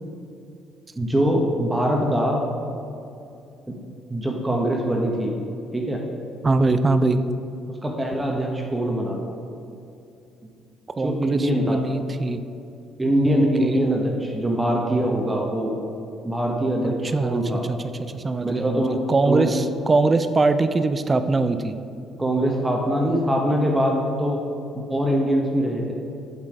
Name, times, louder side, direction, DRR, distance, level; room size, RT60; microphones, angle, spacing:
voice 1, 1.0-2.4 4.1-5.4 5.7-6.0 7.8-9.2 11.0-11.8 13.0-15.8 16.2-17.6 18.4-19.0 19.2-19.5 22.2-24.4 24.9-25.9, right 1 dB, 15° right, -1 dB, 1.4 m, -23 dB
voice 2, 6.4-7.2 11.0-12.4 13.3-13.8 16.8-17.4 17.7-21.8, right 3 dB, 30° right, 10 dB, 0.5 m, -22 dB
7.5 x 7.2 x 4.8 m, 2.7 s
hypercardioid pair, 55°, 0 cm